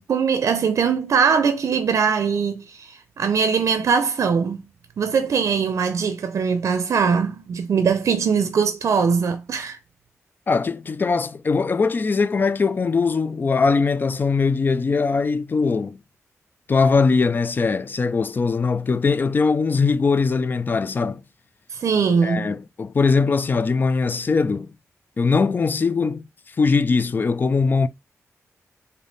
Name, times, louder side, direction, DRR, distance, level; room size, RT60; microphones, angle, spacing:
voice 1, 0.1-4.6 5.0-9.8 21.7-22.5, right 6 dB, 70° right, 0.5 m, -21 dB
voice 2, 10.5-16.0 16.7-21.2 22.2-24.7 25.2-27.9, left 4 dB, 35° left, 0.4 m, -21 dB
3.5 x 2.7 x 3.9 m
wide cardioid pair, 95°, 5 cm